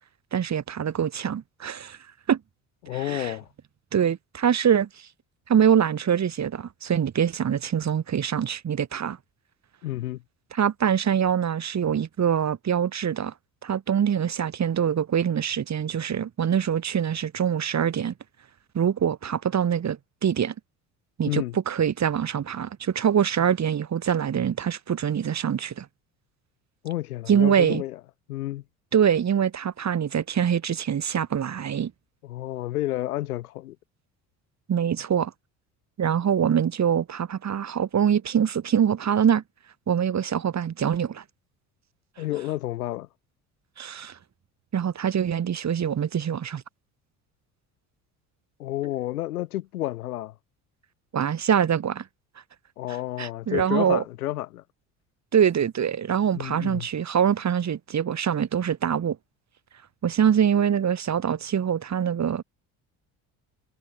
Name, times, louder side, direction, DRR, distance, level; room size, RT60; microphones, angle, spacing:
voice 1, 0.3-2.0 2.3-2.4 2.9-3.3 3.9-5.1 5.5-9.2 10.5-13.3 13.6-18.1 18.7-20.5 21.2-25.9 27.3-27.8 28.9-31.9 34.7-35.3 36.0-39.4 39.9-41.2 43.8-44.2 44.7-46.6 51.1-52.1 53.2-54.0 55.3-59.2 60.0-62.4, right 8 dB, 40° right, 2.3 m, -24 dB
voice 2, 2.8-3.5 9.8-10.2 21.3-21.6 26.8-28.0 28.3-28.6 32.2-33.8 42.2-43.1 48.6-50.3 52.8-54.6 56.3-56.9, left 15 dB, 85° left, 4.0 m, -30 dB
hypercardioid pair, 65°, 44 cm